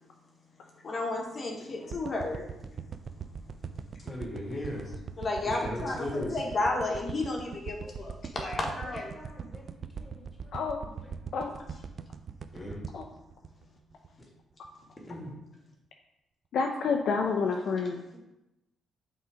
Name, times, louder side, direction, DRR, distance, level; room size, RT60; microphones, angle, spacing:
voice 1, 0.8-3.6 5.2-9.1, left 2 dB, 40° left, 0 dB, 1.2 m, -33 dB
sound 1, 1.9-14.2 14.6-14.7, right 6 dB, 50° right, 0.4 m, -41 dB
voice 2, 4.0-4.9 5.4-6.4 8.8-11.1 12.5-12.8 15.1-15.3 18.1-18.2, left 1 dB, 20° left, -1 dB, 1.9 m, -39 dB
voice 3, 16.5-18.0, left 5 dB, 65° left, 2 dB, 0.5 m, -28 dB
5.6 x 3.8 x 4.9 m, 0.95 s
cardioid pair, 90°, 0 cm